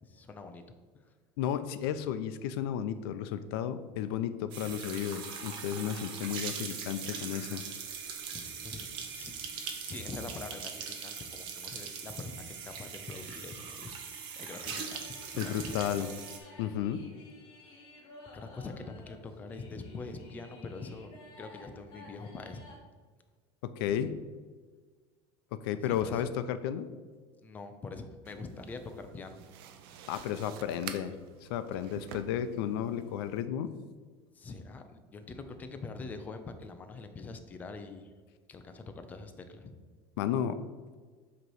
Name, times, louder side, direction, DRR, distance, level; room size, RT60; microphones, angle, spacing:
voice 1, 0.0-0.6 0.9-1.0 4.7-4.8 8.3-14.0 14.4-16.1 16.4-16.6 18.3-22.7 25.7-26.2 27.4-29.4 34.3-38.1 38.5-39.8, left 3 dB, 15° left, 7 dB, 0.3 m, -44 dB
voice 2, 1.4-7.6 15.4-16.1 16.6-17.0 23.6-24.2 25.5-26.9 30.1-33.7 40.2-40.6, left 9 dB, 85° left, 11 dB, 0.5 m, -33 dB
sound 1, 4.5-16.4, right 6 dB, 40° right, 0.7 m, -41 dB
sound 2, 14.5-22.8, left 1 dB, 35° left, 1.2 m, -53 dB
sound 3, 28.2-33.4, right 8 dB, 85° right, 0.5 m, -48 dB
7.7 x 3.0 x 4.7 m, 1.5 s
cardioid pair, 180°, 12 cm